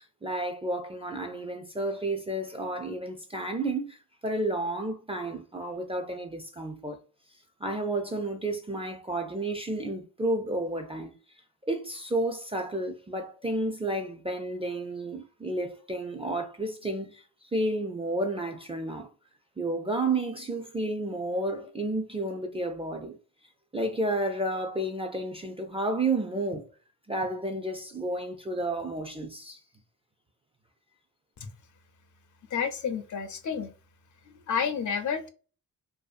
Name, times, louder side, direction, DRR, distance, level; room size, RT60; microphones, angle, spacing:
voice 1, 0.0-7.0 7.6-11.1 11.7-17.2 17.5-19.1 19.6-23.2 23.7-26.6 27.1-29.6, right 2 dB, 15° right, 0.3 m, -31 dB
voice 2, 32.5-33.7 34.5-35.3, left 6 dB, 50° left, 0.5 m, -30 dB
2.6 x 2.3 x 2.4 m
cardioid pair, 70°, 39 cm